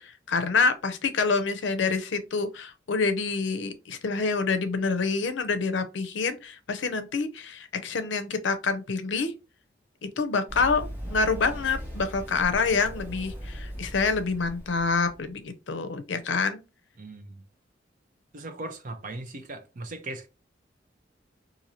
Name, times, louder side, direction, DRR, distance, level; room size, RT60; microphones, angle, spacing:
voice 1, 0.0-9.3 10.0-16.6, left 4 dB, 75° left, 0.5 m, -27 dB
Run, 10.5-15.3, equal, 10° right, 0.9 m, -38 dB
voice 2, 17.0-17.4 18.3-20.3, right 2 dB, 45° right, 0.6 m, -38 dB
2.7 x 2.6 x 2.9 m
head